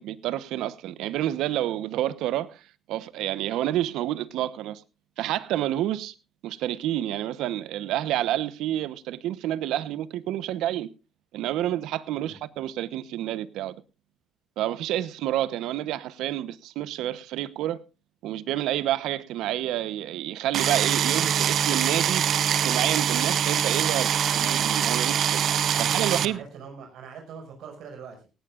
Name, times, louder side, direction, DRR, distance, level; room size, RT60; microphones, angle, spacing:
voice 1, 0.0-2.6 2.9-4.8 5.2-6.1 6.4-10.9 11.3-13.7 14.6-17.8 18.2-22.3 22.6-25.4 25.8-26.4, right 13 dB, 90° right, 0.9 m, -29 dB
sound 1, 20.5-26.2, right 9 dB, 55° right, 0.7 m, -24 dB
voice 2, 25.6-28.2, right 6 dB, 70° right, 5.9 m, -42 dB
18.5 x 17.0 x 2.5 m
cardioid pair, 145°, 0 cm